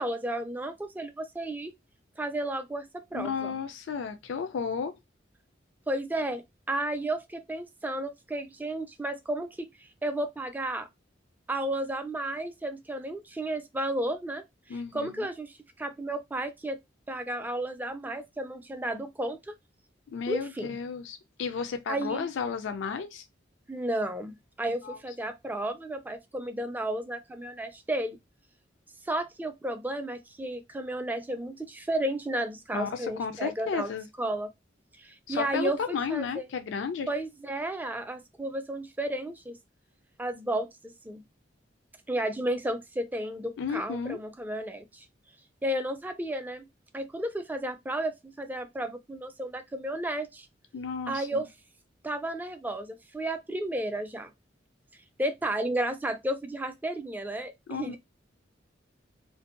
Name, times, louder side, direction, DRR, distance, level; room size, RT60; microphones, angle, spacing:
voice 1, 0.0-1.7 2.2-3.6 5.9-9.7 10.0-10.9 11.5-14.4 14.7-16.8 17.1-19.5 20.3-20.8 21.9-22.3 23.7-28.2 29.0-33.9 34.2-34.5 35.0-36.5 37.1-39.6 40.2-41.2 42.1-45.1 45.6-46.7 46.9-50.5 51.1-51.5 52.0-54.3 55.2-58.0, right 1 dB, 10° right, 0.3 m, -33 dB
voice 2, 3.1-5.0 14.7-15.3 20.1-23.3 24.8-25.0 32.7-34.1 35.3-37.1 43.6-44.2 50.7-51.4 57.7-58.0, left 6 dB, 75° left, 0.3 m, -33 dB
2.6 x 2.2 x 2.4 m
head